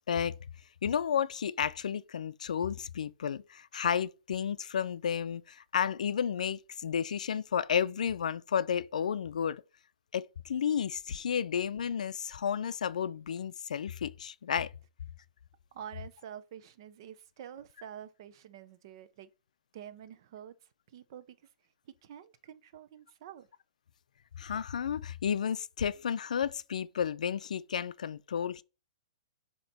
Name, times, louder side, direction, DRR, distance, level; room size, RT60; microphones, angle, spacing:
voice 1, 0.8-9.6 10.1-14.7 24.4-28.6, left 8 dB, 80° left, 0.4 m, -32 dB
voice 2, 15.7-19.3 19.7-20.6 20.9-21.5 21.8-23.5, right 9 dB, 40° right, 0.5 m, -48 dB
7.8 x 2.9 x 4.2 m
hypercardioid pair, 170°, 4 cm